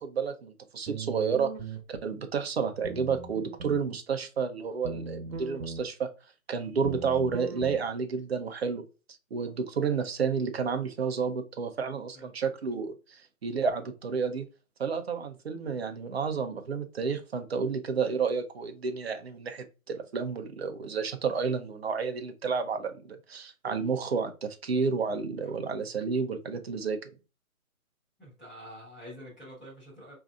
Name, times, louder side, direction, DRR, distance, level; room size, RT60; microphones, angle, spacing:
voice 1, 0.0-1.5 1.9-6.1 6.5-8.8 9.3-14.5 14.8-27.1, right 5 dB, 45° right, 0.7 m, -31 dB
sound 1, 0.9-1.8 2.8-3.9 4.8-5.8 6.8-7.8, right 4 dB, 80° right, 0.9 m, -39 dB
voice 2, 28.2-30.1, equal, ahead, 1.2 m, -47 dB
4.6 x 2.7 x 2.3 m
hypercardioid pair, 160°, 43 cm